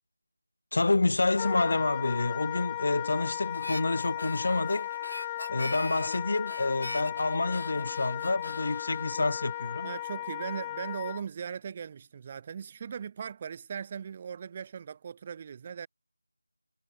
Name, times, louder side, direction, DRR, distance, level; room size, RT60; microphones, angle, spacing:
voice 1, 0.7-4.9 5.2-9.9, left 2 dB, 45° left, 0.7 m, -28 dB
Wind instrument woodwind instrument, 1.4-11.2, left 14 dB, 10° left, 1.3 m, -36 dB
Harmonica, 3.5-10.0, left 2 dB, 70° left, 7.2 m, -43 dB
voice 2, 9.8-15.9, right 7 dB, 20° right, 2.5 m, -39 dB
figure-of-eight pair, 175°, 0 cm